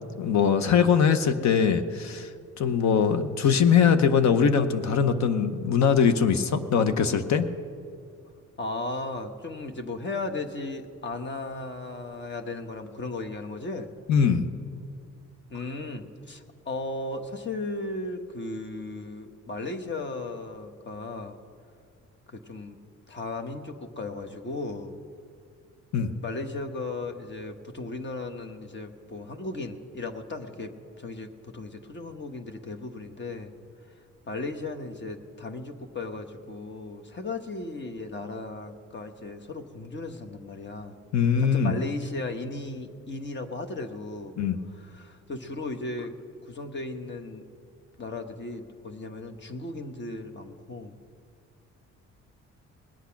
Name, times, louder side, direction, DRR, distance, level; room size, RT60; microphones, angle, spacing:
voice 1, 0.2-2.3 2.6-7.4 14.1-14.5 25.9-26.1 41.1-41.7 44.4-44.6, left 6 dB, 65° left, 10 dB, 0.9 m, -22 dB
voice 2, 8.6-13.9 15.5-21.4 22.3-22.8 23.1-25.0 26.2-33.5 34.2-41.0 41.4-44.3 44.8-46.1 46.5-47.5 48.0-50.9, left 2 dB, 35° left, 5 dB, 1.2 m, -36 dB
20.0 x 8.2 x 5.9 m, 2.2 s
cardioid pair, 90°, 30 cm